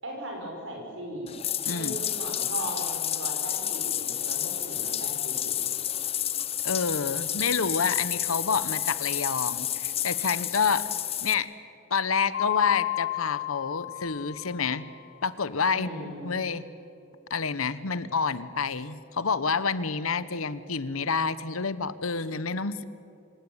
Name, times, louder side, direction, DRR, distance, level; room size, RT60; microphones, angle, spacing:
voice 1, 0.0-5.7 15.7-16.3, right 1 dB, 60° right, 0 dB, 6.8 m, -38 dB
Bathtub (filling or washing), 1.3-11.3, left 11 dB, 30° left, 0.8 m, -30 dB
voice 2, 1.7-2.0 6.6-10.8 11.2-11.5 11.9-14.9 15.2-16.6 17.3-22.8, left 5 dB, 85° left, 15 dB, 1.0 m, -28 dB
Mallet percussion, 12.3-15.0, left 17 dB, 55° left, 3.0 m, -32 dB
26.5 x 17.0 x 9.7 m, 2.7 s
head